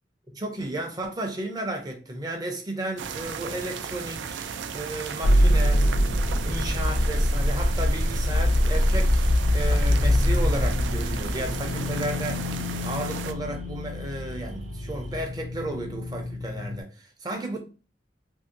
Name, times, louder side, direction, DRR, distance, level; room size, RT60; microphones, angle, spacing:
voice 1, 0.3-5.9 6.4-17.6, right 1 dB, 20° right, 0.5 m, -33 dB
sound 1, 3.0-13.3, right 6 dB, 80° right, 0.3 m, -36 dB
sound 2, 5.2-16.8, left 1 dB, 60° left, 0.4 m, -24 dB
sound 3, 6.0-15.2, right 1 dB, 40° right, 0.9 m, -39 dB
2.7 x 2.7 x 2.5 m
head